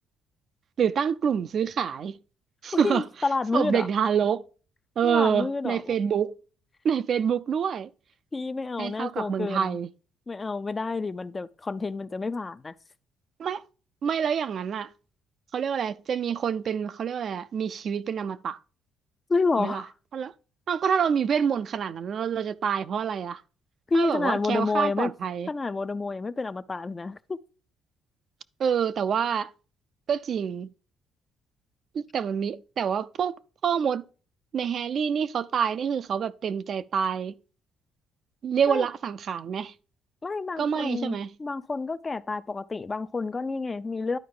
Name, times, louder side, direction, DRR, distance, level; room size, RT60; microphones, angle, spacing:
voice 1, 0.8-2.2 2.6-3.0 3.5-4.4 5.0-6.4 6.8-7.9 8.8-9.9 13.4-13.6 14.0-14.9 15.5-18.6 19.6-19.8 20.1-20.3 20.7-23.4 23.9-25.5 28.6-29.5 30.1-30.7 31.9-33.4 33.6-34.0 34.5-37.4 38.4-39.7 40.6-41.3, right 7 dB, 50° right, 0.4 m, -27 dB
voice 2, 2.7-3.9 5.0-6.0 8.3-9.8 10.3-12.7 19.3-19.9 23.9-25.1 25.5-27.4 38.7-38.9 40.2-44.2, left 3 dB, 25° left, 0.4 m, -29 dB
11.0 x 4.7 x 3.7 m
cardioid pair, 100°, 0 cm